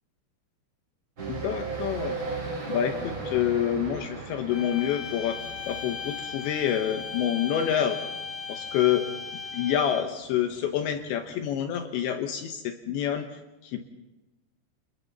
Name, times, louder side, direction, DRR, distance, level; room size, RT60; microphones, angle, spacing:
sound 1, 1.2-11.5, right 4 dB, 25° right, 8.3 m, -39 dB
voice 1, 1.3-2.2 2.7-8.1 8.5-9.1 9.5-13.3 13.6-13.8, left 9 dB, 75° left, 5 dB, 3.4 m, -27 dB
sound 2, 4.5-10.2, left 5 dB, 45° left, 2.1 m, -37 dB
29.5 x 29.5 x 4.1 m, 1.1 s
omnidirectional pair, 5.3 m